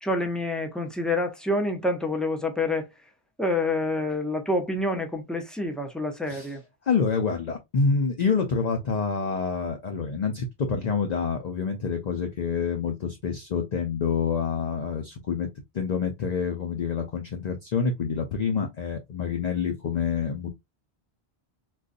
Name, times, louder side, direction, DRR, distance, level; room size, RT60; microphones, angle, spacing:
voice 1, 0.0-2.9 3.4-6.6, left 2 dB, ahead, 0.4 m, -27 dB
voice 2, 6.8-15.5 15.7-20.5, left 5 dB, 50° left, 0.6 m, -27 dB
3.8 x 2.4 x 2.5 m
omnidirectional pair, 1.1 m